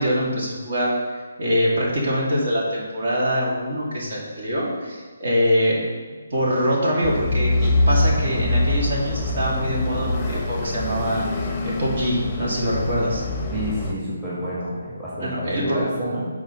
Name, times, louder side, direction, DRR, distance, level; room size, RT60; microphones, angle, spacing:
voice 1, 0.0-5.8 6.3-13.2 15.2-15.8, equal, 55° right, -5 dB, 2.3 m, -24 dB
sound 1, 7.0-13.9, left 2 dB, 15° left, 0.8 m, -24 dB
voice 2, 13.5-16.3, equal, 10° right, -10 dB, 1.8 m, -29 dB
9.1 x 4.7 x 3.9 m, 1.4 s
hypercardioid pair, 165°, 0 cm